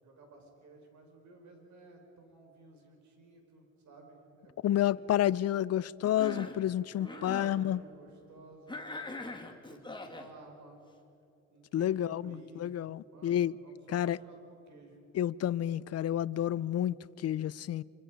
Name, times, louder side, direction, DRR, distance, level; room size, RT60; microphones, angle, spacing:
voice 1, 0.0-5.2 7.0-10.8 11.5-12.8 13.1-15.0, right 2 dB, 70° right, 5.5 m, -55 dB
voice 2, 4.6-7.8 11.7-13.5 13.9-14.2 15.1-17.8, left 11 dB, 55° left, 0.5 m, -30 dB
Cough, 6.0-6.6 7.0-7.6 8.7-10.3, left 2 dB, 15° left, 2.4 m, -42 dB
Acoustic guitar, 7.0-9.8, right 8 dB, 50° right, 2.2 m, -56 dB
27.0 x 26.0 x 5.2 m
cardioid pair, 90°, 30 cm